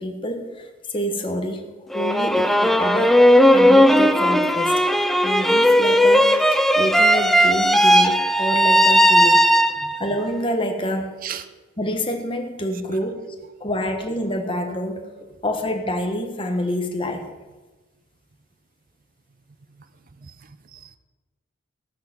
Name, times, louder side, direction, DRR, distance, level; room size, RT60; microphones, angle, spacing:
voice 1, 0.0-3.2 3.5-4.8 5.2-9.5 10.0-11.2 11.8-13.3 13.6-15.1 15.4-17.3, equal, 25° left, 3 dB, 1.4 m, -27 dB
sound 1, 1.9-10.1, equal, ahead, 0.4 m, -16 dB
voice 2, 20.2-21.0, right 8 dB, 45° right, 11 dB, 0.6 m, -38 dB
17.5 x 6.7 x 6.1 m, 1.2 s
head